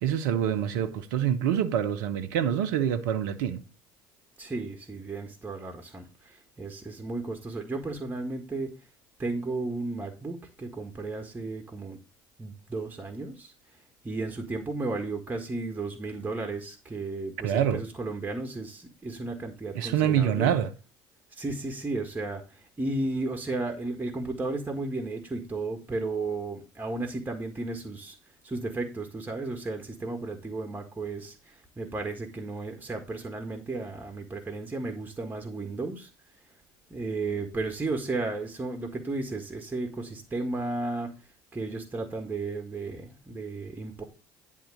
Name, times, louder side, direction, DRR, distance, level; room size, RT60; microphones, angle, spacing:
voice 1, 0.0-3.6 17.4-17.8 19.7-20.7, right 9 dB, 70° right, 0.8 m, -26 dB
voice 2, 4.4-8.8 9.2-12.0 12.4-13.5 14.0-20.5 21.3-28.1 28.4-36.1 36.9-41.2 41.5-44.0, right 3 dB, 15° right, 1.7 m, -34 dB
10.0 x 3.7 x 6.4 m
hypercardioid pair, 65°, 11 cm